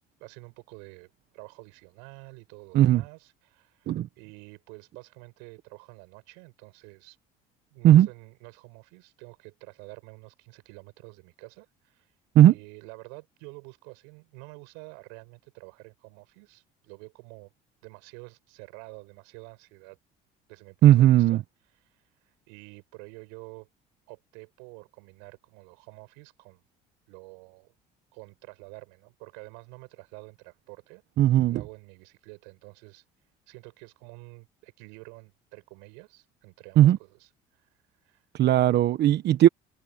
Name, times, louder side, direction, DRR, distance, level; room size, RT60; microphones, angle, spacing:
voice 1, 0.2-7.2 7.7-12.1 12.5-17.5 17.8-20.0 20.5-21.4 21.8-23.7 24.1-26.6 27.1-27.7 28.1-31.0 31.5-33.0 33.5-37.7 38.0-38.2, right 33 dB, 85° right, 7.5 m, -48 dB
voice 2, 20.8-21.4 31.2-31.6 36.8-37.0 38.3-39.5, right 12 dB, 60° right, 1.2 m, -17 dB
supercardioid pair, 80°, 19 cm